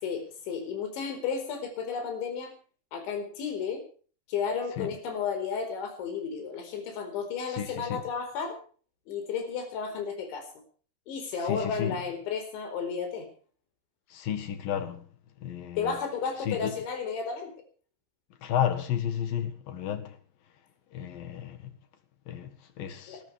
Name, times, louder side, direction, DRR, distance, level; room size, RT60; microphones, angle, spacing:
voice 1, 0.0-2.5 2.9-3.8 4.3-8.6 9.1-10.5 11.1-13.3 15.8-17.5 23.1-23.2, left 6 dB, 85° left, 6.7 m, -33 dB
voice 2, 7.5-8.0 11.5-12.0 14.1-15.1 15.4-16.0 16.5-16.7 18.4-20.2 20.9-21.7 22.3-23.2, left 9 dB, 60° left, 3.1 m, -32 dB
25.0 x 13.5 x 3.4 m
omnidirectional pair, 5.1 m